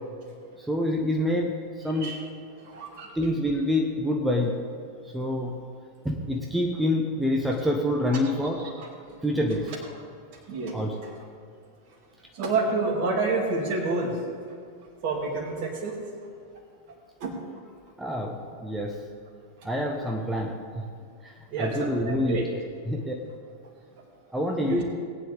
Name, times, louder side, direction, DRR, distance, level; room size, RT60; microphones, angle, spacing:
voice 1, 0.6-2.1 3.1-4.6 5.0-5.6 6.0-8.6 9.2-9.8 10.7-10.9 18.0-19.0 19.6-20.9 21.2-22.5 22.9-23.1 24.3-24.8, left 1 dB, 5° right, 1 dB, 1.1 m, -27 dB
voice 2, 2.6-3.2 8.1-8.2 8.6-8.9 10.4-11.1 12.3-14.3 15.0-16.0 17.2-17.4 21.5-22.5 24.6-24.8, right 3 dB, 45° right, 1 dB, 2.5 m, -29 dB
19.0 x 9.7 x 3.5 m, 2.4 s
figure-of-eight pair, 90°, 0 cm